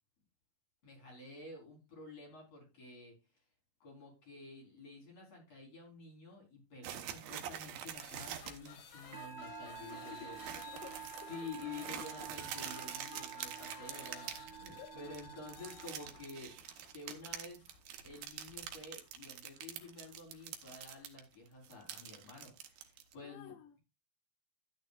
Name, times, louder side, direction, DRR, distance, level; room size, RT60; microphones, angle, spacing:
voice 1, 0.8-3.1 3.8-10.4 11.3-16.6 16.9-17.6 18.0-23.5, left 3 dB, 40° left, 5.0 m, -50 dB
sound 1, 6.8-8.7 9.1-9.2 9.5-9.8 10.4-14.9 15.1-21.2 21.5-23.1, right 10 dB, 75° right, 2.8 m, -45 dB
sound 2, 7.9-21.1, left 6 dB, 60° left, 1.3 m, -56 dB
Musical instrument, 9.1-16.8, right 8 dB, 35° right, 2.7 m, -50 dB
voice 2, 9.9-11.5 11.9-12.0 14.8-15.2 23.2-23.7, left 10 dB, 80° left, 2.0 m, -54 dB
13.0 x 9.2 x 2.4 m
omnidirectional pair, 4.3 m